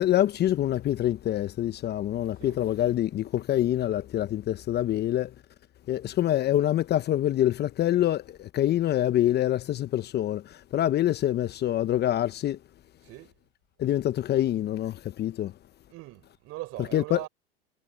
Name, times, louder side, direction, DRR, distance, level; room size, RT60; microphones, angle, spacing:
voice 1, 0.0-5.3 5.9-12.6 13.8-15.5 16.8-17.3, left 12 dB, 30° left, 1.1 m, -26 dB
voice 2, 15.9-17.3, right 19 dB, 45° right, 6.9 m, -40 dB
hypercardioid pair, 100°, 31 cm